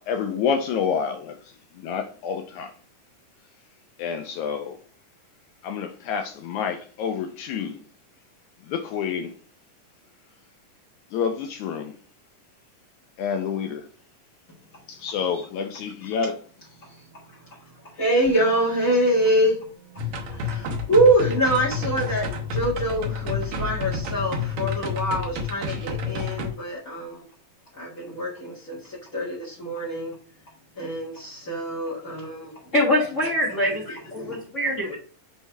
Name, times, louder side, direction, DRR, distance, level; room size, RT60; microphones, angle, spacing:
voice 1, 0.0-1.4 1.8-2.7 4.0-4.8 5.6-7.8 8.6-9.4 11.1-11.9 13.2-13.9 14.9-16.4, left 6 dB, 80° left, 1.8 m, -28 dB
voice 2, 17.9-19.6 20.3-27.2 27.7-30.1 30.8-32.5 33.6-34.4, right 1 dB, 35° left, 1.5 m, -25 dB
Musical instrument, 18.2-26.1 26.4-26.6, right 8 dB, 10° left, 1.5 m, -53 dB
sound 1, 20.0-26.5, left 4 dB, 65° right, 1.5 m, -29 dB
voice 3, 32.7-33.8 34.1-34.9, left 1 dB, 60° left, 0.7 m, -23 dB
6.3 x 3.3 x 4.6 m
omnidirectional pair, 3.8 m